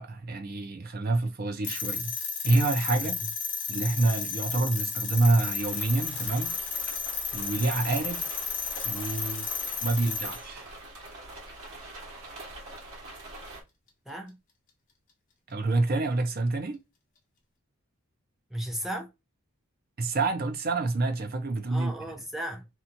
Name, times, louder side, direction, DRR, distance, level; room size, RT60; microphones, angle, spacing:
voice 1, 0.0-2.1 2.4-3.2 3.7-6.5 7.3-8.3 8.8-9.5 9.8-10.7 15.5-16.8 20.0-21.9, right 2 dB, 45° right, 0.6 m, -27 dB
sound 1, 1.6-10.4, left 6 dB, 40° left, 0.9 m, -33 dB
sound 2, 5.6-13.6, right 2 dB, 90° right, 1.2 m, -44 dB
voice 2, 14.1-14.4 18.5-19.1 21.7-22.7, right 1 dB, ahead, 0.5 m, -35 dB
2.9 x 2.4 x 2.6 m
head